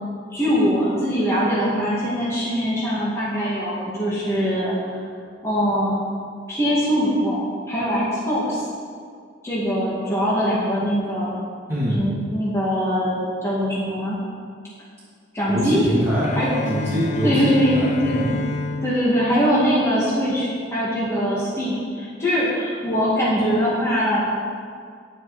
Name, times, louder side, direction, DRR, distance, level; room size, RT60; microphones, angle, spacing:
voice 1, 0.3-5.0 5.4-6.0 6.5-8.6 9.4-11.3 12.0-14.2 15.3-15.8 16.3-16.5 17.2-17.7 18.0-18.2 18.8-24.2, equal, 15° left, -8 dB, 2.0 m, -22 dB
voice 2, 11.7-12.0 15.5-16.3 16.7-18.3, equal, 15° right, -11 dB, 2.5 m, -24 dB
Bowed string instrument, 16.2-20.3, left 2 dB, 40° left, 0.6 m, -31 dB
10.0 x 9.7 x 4.2 m, 2.1 s
head